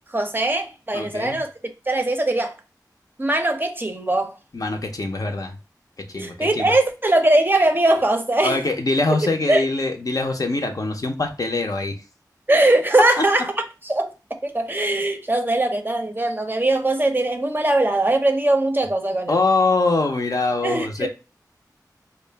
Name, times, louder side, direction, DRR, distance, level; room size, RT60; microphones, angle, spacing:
voice 1, 0.1-1.5 1.9-2.5 3.2-4.3 6.1-8.6 9.5-9.7 12.5-13.5 13.8-14.1 14.4-19.4 20.6-21.1, right 2 dB, 30° right, 0.5 m, -20 dB
voice 2, 0.9-1.4 4.5-5.5 6.1-6.7 8.4-12.0 19.3-21.1, left 3 dB, 55° left, 0.5 m, -23 dB
2.3 x 2.0 x 3.2 m
wide cardioid pair, 45°, 7 cm